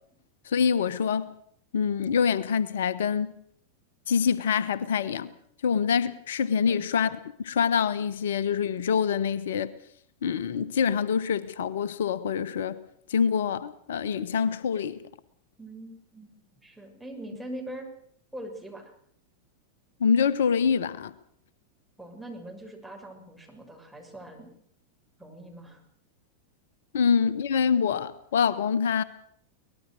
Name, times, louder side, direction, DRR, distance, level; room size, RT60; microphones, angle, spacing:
voice 1, 0.5-1.3 1.7-3.3 4.1-5.3 5.6-9.7 10.2-12.8 13.1-15.0 20.0-21.1 26.9-29.0, left 6 dB, 60° left, 1.2 m, -25 dB
voice 2, 15.6-16.3 16.6-17.9 18.3-18.8 22.0-24.5 25.2-25.8, right 1 dB, ahead, 6.8 m, -42 dB
23.5 x 20.0 x 6.6 m
figure-of-eight pair, 90°, 0 cm